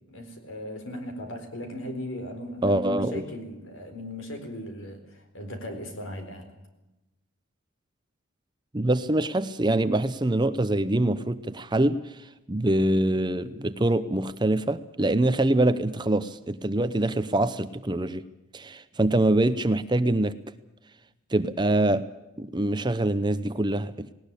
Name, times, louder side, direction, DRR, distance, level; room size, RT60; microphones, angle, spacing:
voice 1, 0.1-6.5, left 1 dB, 65° left, 6 dB, 4.3 m, -37 dB
voice 2, 2.6-3.2 8.7-18.2 18.5-20.4 21.3-22.1 22.4-24.1, right 1 dB, 20° right, 13 dB, 0.7 m, -24 dB
18.5 x 18.5 x 8.4 m, 0.99 s
head